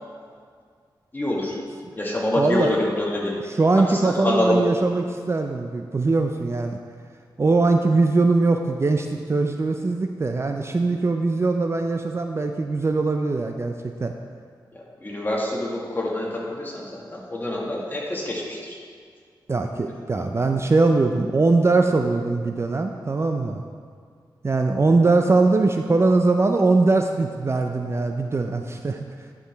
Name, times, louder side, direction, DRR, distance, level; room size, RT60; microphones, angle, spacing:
voice 1, 1.1-1.6 2.0-3.3 3.7-4.6 14.7-18.8, left 1 dB, 25° left, -3 dB, 1.7 m, -26 dB
voice 2, 2.4-2.7 3.6-6.8 7.4-14.1 19.5-23.6 24.4-29.0, right 3 dB, 35° right, 5 dB, 0.4 m, -21 dB
11.0 x 4.7 x 3.4 m, 2.1 s
cardioid pair, 65°, 8 cm